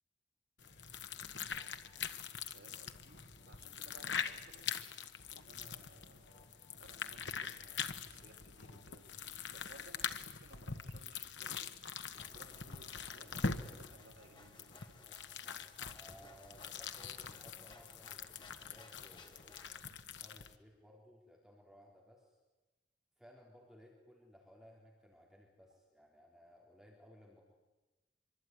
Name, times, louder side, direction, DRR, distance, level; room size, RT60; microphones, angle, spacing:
sound 1, 0.6-20.6, left 6 dB, 80° left, 1.5 m, -44 dB
sound 2, 0.6-10.2, left 1 dB, 55° left, 4.5 m, -64 dB
voice 1, 2.5-4.7 5.3-9.1 9.5-11.8 12.3-15.0, right 1 dB, 75° right, 2 dB, 4.5 m, -61 dB
sound 3, 12.2-19.8, left 2 dB, 30° left, 3.0 m, -60 dB
voice 2, 15.8-22.4 23.2-27.6, equal, ahead, -2 dB, 4.0 m, -61 dB
25.0 x 24.5 x 9.6 m, 1.1 s
head